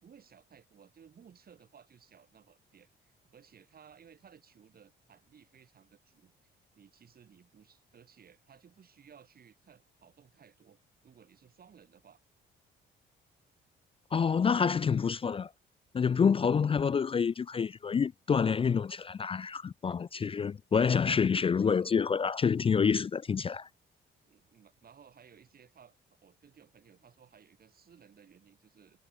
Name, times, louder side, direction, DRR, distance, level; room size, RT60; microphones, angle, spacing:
voice 1, 0.0-6.3 6.8-12.2 21.5-22.0 24.2-29.0, right 7 dB, 50° right, 3.4 m, -59 dB
voice 2, 14.1-15.5 15.9-23.7, left 6 dB, 30° left, 0.4 m, -27 dB
cardioid pair, 90°, 20 cm